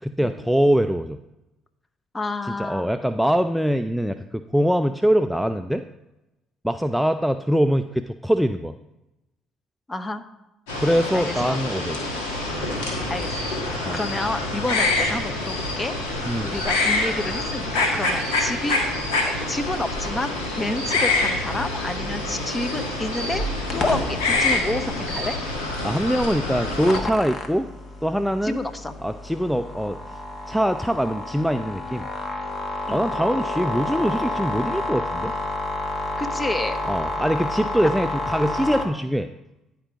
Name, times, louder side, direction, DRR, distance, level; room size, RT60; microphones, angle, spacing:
voice 1, 0.0-1.2 2.6-5.8 6.6-8.7 10.8-12.0 13.8-14.0 16.3-16.5 25.8-27.7 28.0-28.6 29.0-30.0 30.5-32.1 32.9-35.3 36.9-39.3, equal, ahead, 8 dB, 0.4 m, -23 dB
voice 2, 2.1-2.9 9.9-10.2 11.1-11.6 13.1-13.5 13.9-16.1 16.4-18.8 19.5-23.4 23.7-25.4 28.4-28.9 32.9-33.1 36.2-36.8, left 2 dB, 20° left, 10 dB, 0.9 m, -29 dB
sound 1, 10.7-27.0, left 2 dB, 85° left, 1.5 m, -26 dB
sound 2, 23.7-38.8, left 2 dB, 40° left, 1.2 m, -30 dB
10.5 x 4.6 x 5.0 m, 0.95 s
hypercardioid pair, 60°, 0 cm